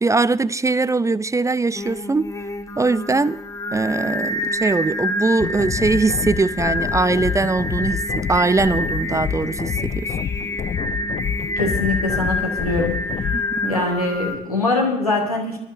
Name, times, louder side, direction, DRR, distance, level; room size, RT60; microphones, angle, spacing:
voice 1, 0.0-2.3 2.8-3.4 3.7-10.1 13.3-13.8, right 3 dB, 15° right, 0.5 m, -21 dB
Singing, 1.7-14.4, left 1 dB, 15° left, 1.7 m, -28 dB
sound 1, 5.4-13.4, left 8 dB, 35° left, 0.5 m, -28 dB
voice 2, 11.6-13.0 13.6-15.6, left 2 dB, 90° left, 1.7 m, -22 dB
23.0 x 13.0 x 2.7 m
figure-of-eight pair, 40°, 18 cm